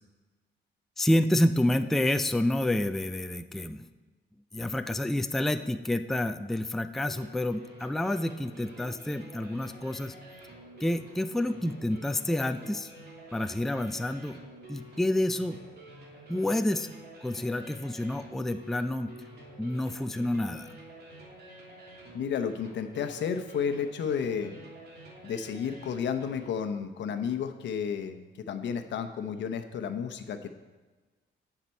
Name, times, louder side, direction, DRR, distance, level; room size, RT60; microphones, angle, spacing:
voice 1, 1.0-3.9 4.5-10.2 10.8-12.9 13.3-14.4 14.7-15.6 16.3-16.9 17.2-19.1 19.6-20.7, left 1 dB, ahead, 8 dB, 0.4 m, -28 dB
sound 1, 7.1-26.5, right 1 dB, 60° right, 2.8 m, -49 dB
voice 2, 22.1-24.5 25.2-30.5, left 7 dB, 75° left, 8 dB, 0.9 m, -32 dB
17.5 x 5.9 x 4.4 m, 1.3 s
cardioid pair, 125°, 19 cm